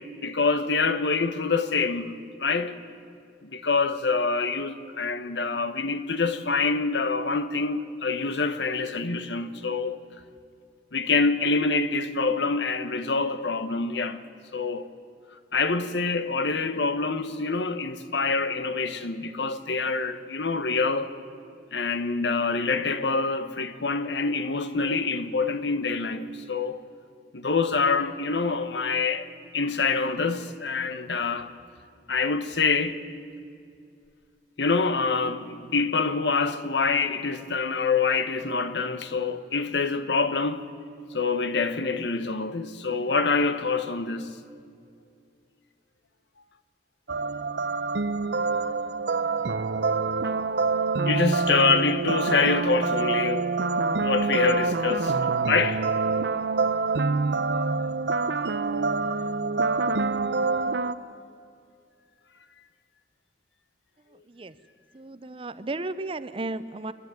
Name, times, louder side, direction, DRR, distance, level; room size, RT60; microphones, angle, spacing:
voice 1, 0.2-2.1 2.4-2.7 3.4-10.0 10.9-14.2 14.5-14.9 15.5-21.1 21.7-26.8 27.3-31.5 32.1-33.0 34.6-40.6 41.1-44.3 51.0-53.5 54.0-55.2 55.5-55.9, left 4 dB, 85° left, 1.1 m, -26 dB
sound 1, 47.1-60.9, right 4 dB, 80° right, 0.7 m, -26 dB
voice 2, 64.9-66.9, right 2 dB, 30° right, 0.7 m, -34 dB
28.5 x 11.5 x 9.5 m
head